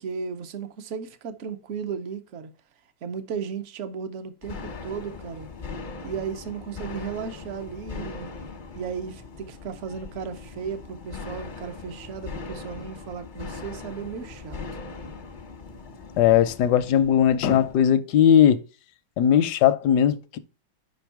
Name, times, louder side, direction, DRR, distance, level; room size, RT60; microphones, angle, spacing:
voice 1, 0.0-2.5 3.0-5.5 6.0-8.3 8.7-14.6, right 6 dB, 70° right, 0.7 m, -35 dB
sound 1, 4.4-17.9, left 4 dB, 55° left, 0.5 m, -40 dB
voice 2, 16.2-18.6 19.2-20.4, left 9 dB, 75° left, 0.9 m, -19 dB
5.3 x 5.3 x 4.6 m
omnidirectional pair, 2.2 m